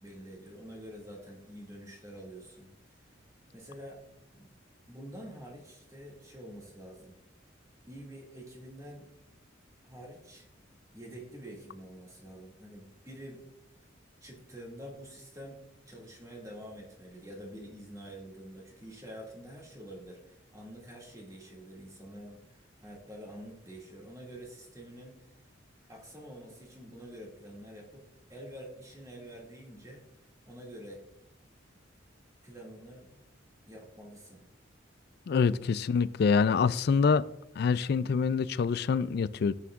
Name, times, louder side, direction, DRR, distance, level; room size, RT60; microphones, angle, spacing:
voice 1, 0.0-3.1 3.5-4.5 4.9-7.2 7.9-9.1 9.8-10.5 10.9-13.5 14.2-25.2 25.9-30.0 30.4-31.0 32.4-33.2 33.7-34.4, equal, 15° right, 2.2 m, -47 dB
voice 2, 35.3-37.2 37.6-39.5, left 5 dB, 55° left, 0.3 m, -26 dB
13.0 x 8.5 x 2.4 m
head